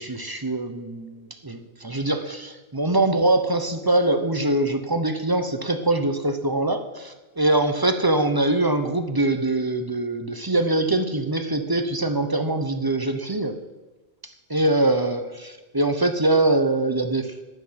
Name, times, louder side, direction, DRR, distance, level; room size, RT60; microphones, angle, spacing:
voice 1, 0.0-13.6 14.5-17.4, right 2 dB, 25° right, 7 dB, 0.7 m, -23 dB
10.5 x 9.2 x 5.8 m, 1.2 s
omnidirectional pair, 1.1 m